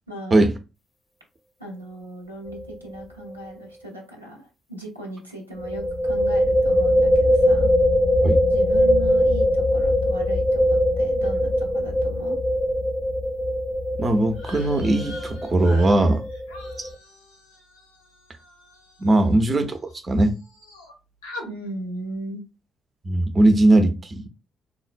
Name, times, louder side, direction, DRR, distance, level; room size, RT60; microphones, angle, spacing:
voice 1, 0.1-0.4 1.6-7.7 8.5-12.4 19.2-19.4 21.4-22.4, right 1 dB, 90° right, 0.5 m, -37 dB
sound 1, 2.5-2.7 3.0-3.1 5.6-16.9, equal, 25° left, 0.5 m, -21 dB
voice 2, 14.0-16.2 16.8-16.9 19.0-19.8 20.0-20.4 23.0-24.3, right 2 dB, 35° right, 0.5 m, -19 dB
sound 2, 14.3-19.9 20.2-20.9 21.2-21.5, left 1 dB, 80° left, 0.6 m, -43 dB
3.7 x 2.1 x 2.5 m
figure-of-eight pair, 40°, 0 cm